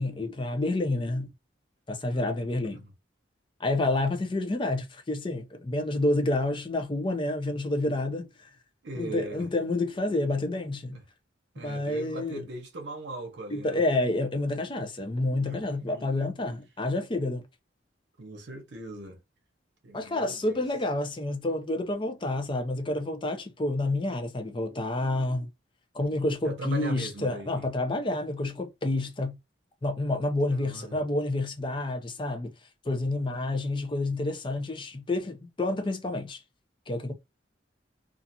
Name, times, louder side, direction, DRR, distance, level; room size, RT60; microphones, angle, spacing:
voice 1, 0.0-1.3 1.9-2.8 3.6-8.5 9.0-11.0 11.6-12.4 13.5-17.4 19.9-25.5 25.9-29.4 29.8-32.5 32.8-36.4 36.9-37.1, left 2 dB, 25° left, 0.5 m, -29 dB
voice 2, 8.8-9.5 10.9-11.0 11.5-13.8 15.4-16.3 18.2-19.2 19.8-20.6 26.4-27.6 30.5-31.0, right 2 dB, 70° right, 0.8 m, -40 dB
2.5 x 2.4 x 2.7 m
head